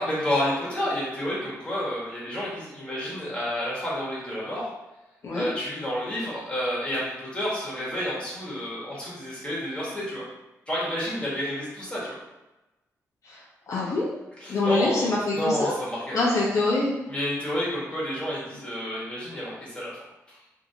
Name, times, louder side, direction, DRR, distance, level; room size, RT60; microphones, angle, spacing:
voice 1, 0.0-4.7 5.3-10.3 10.7-12.1 14.4-16.4 17.1-20.0 20.3-20.4, equal, 15° left, -7 dB, 1.4 m, -30 dB
voice 2, 13.2-14.1 14.5-15.7 16.1-17.0, left 2 dB, 65° left, -6 dB, 0.8 m, -25 dB
2.8 x 2.7 x 2.7 m, 0.99 s
cardioid pair, 90°, 6 cm